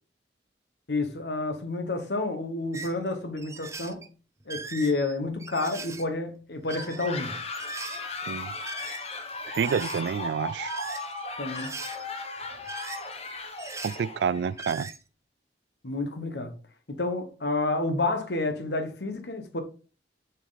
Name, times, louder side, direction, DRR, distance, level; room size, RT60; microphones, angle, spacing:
voice 1, 0.9-4.0 4.5-7.3 11.4-11.7 15.8-16.5 16.9-19.6, left 2 dB, 75° left, 1.2 m, -29 dB
sound 1, 2.7-2.9 3.4-4.1 4.4-6.0 6.6-7.2 7.5-8.0 8.6-9.2 9.5-10.2 10.7-11.2 11.5-12.1 12.4-13.3 13.6-14.0 14.4-15.0, right 4 dB, 15° right, 0.5 m, -40 dB
sound 2, 6.7-14.5, left 3 dB, 35° left, 1.1 m, -37 dB
voice 2, 9.5-10.7 13.8-14.9, right 6 dB, 75° right, 0.3 m, -28 dB
6.8 x 4.6 x 4.0 m
head